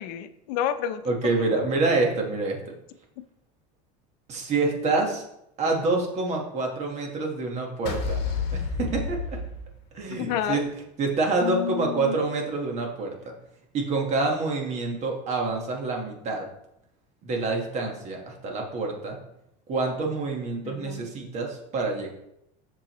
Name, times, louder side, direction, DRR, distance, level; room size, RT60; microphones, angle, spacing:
voice 1, 0.0-1.0 10.2-10.6 11.4-12.2 20.6-21.0, left 10 dB, 90° left, 10 dB, 0.6 m, -29 dB
voice 2, 1.0-2.6 4.3-5.2 5.6-8.2 8.5-9.4 9.9-10.7 11.0-13.1 13.7-16.5 17.2-19.2 19.7-22.1, right 3 dB, 35° right, 1 dB, 1.4 m, -27 dB
sound 1, 7.9-10.2, left 5 dB, 55° left, 1.4 m, -30 dB
7.6 x 6.2 x 3.0 m, 0.81 s
cardioid pair, 165°, 20 cm